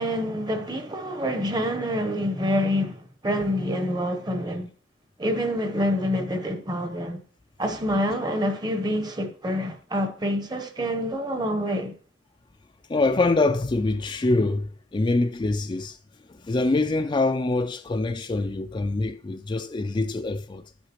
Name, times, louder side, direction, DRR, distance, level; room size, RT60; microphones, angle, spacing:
voice 1, 0.0-4.7 5.2-7.2 7.6-11.9, equal, 20° right, 0.8 m, -27 dB
voice 2, 12.9-16.0 16.3-20.6, left 2 dB, 25° left, 0.4 m, -24 dB
12.0 x 7.9 x 3.0 m
head